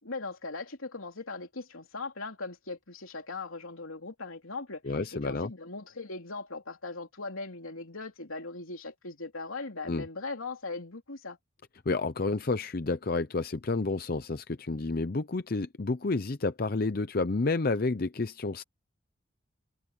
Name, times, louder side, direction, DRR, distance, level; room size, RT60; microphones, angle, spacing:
voice 1, 0.0-11.4, left 3 dB, 80° left, 3.3 m, -39 dB
voice 2, 4.8-5.5 9.9-10.0 11.9-18.6, left 3 dB, 45° left, 0.6 m, -30 dB
head